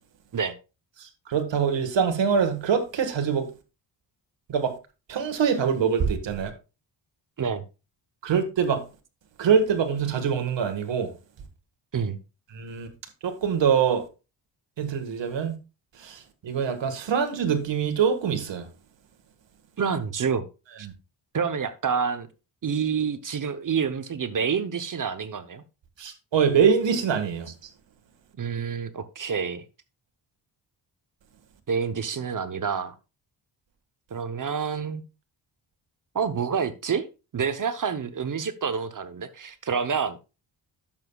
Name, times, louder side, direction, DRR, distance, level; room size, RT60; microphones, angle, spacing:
voice 1, 1.0-3.5 4.5-4.7 5.1-6.5 8.2-8.8 9.4-11.1 12.5-12.9 13.2-14.0 14.8-15.5 16.0-18.6 26.0-27.5, right 7 dB, 70° right, 1.6 m, -24 dB
voice 2, 19.8-20.4 20.8-20.9 21.3-22.3 22.6-25.6 28.4-29.6 31.7-32.9 34.1-35.0 36.1-37.0 37.3-40.2, right 6 dB, 45° right, 0.9 m, -28 dB
10.5 x 7.1 x 2.3 m
cardioid pair, 85°, 46 cm